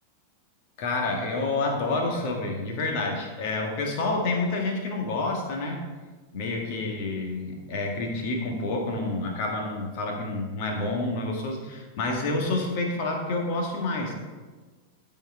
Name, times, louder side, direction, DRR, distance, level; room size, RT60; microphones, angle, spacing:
voice 1, 0.8-5.8 6.3-14.1, left 2 dB, 45° left, 1 dB, 1.7 m, -28 dB
12.5 x 4.7 x 4.7 m, 1.3 s
figure-of-eight pair, 90°, 0 cm